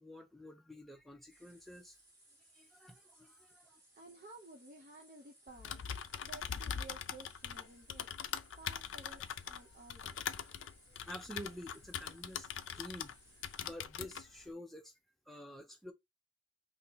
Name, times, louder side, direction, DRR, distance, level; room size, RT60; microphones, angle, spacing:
voice 1, 0.0-2.0 2.5-3.8 10.9-13.1 13.6-14.9 15.3-15.9, left 1 dB, ahead, 0.5 m, -49 dB
sound 1, 1.3-13.7, right 1 dB, 20° right, 1.3 m, -65 dB
voice 2, 3.5-10.5, right 2 dB, 40° right, 0.6 m, -56 dB
Typing, 5.5-13.2 13.4-14.2, left 8 dB, 70° left, 0.4 m, -42 dB
2.8 x 2.7 x 3.9 m
head